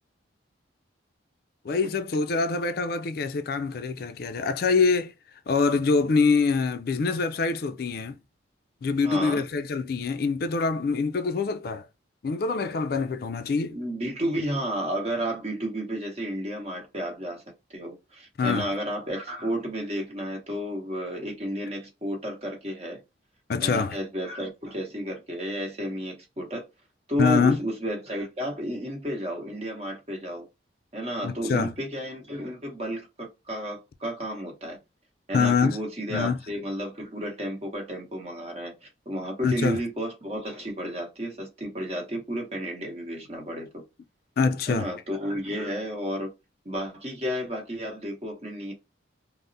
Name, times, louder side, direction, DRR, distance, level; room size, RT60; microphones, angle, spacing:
voice 1, 1.6-5.1 5.5-8.2 8.8-11.9 12.2-13.7 18.4-18.7 23.5-24.0 27.2-27.6 31.2-31.7 35.3-35.8 36.1-36.4 39.4-39.8 44.4-44.9, left 4 dB, 50° left, 0.3 m, -25 dB
voice 2, 9.0-9.4 13.7-17.4 17.7-23.0 23.6-26.6 27.1-30.4 30.9-34.8 35.3-43.8 44.7-46.3 46.6-48.7, equal, 35° right, 0.9 m, -32 dB
3.4 x 2.0 x 2.5 m
head